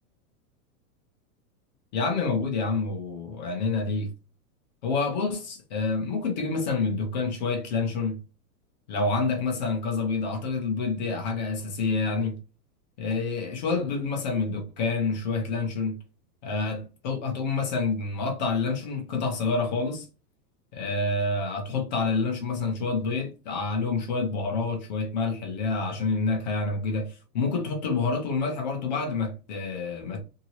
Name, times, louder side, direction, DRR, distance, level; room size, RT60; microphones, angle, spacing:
voice 1, 1.9-4.1 4.8-8.2 8.9-12.4 13.0-16.0 16.4-20.1 20.7-30.2, left 4 dB, 30° left, 0.5 m, -28 dB
2.8 x 2.7 x 2.8 m
supercardioid pair, 170°, 46 cm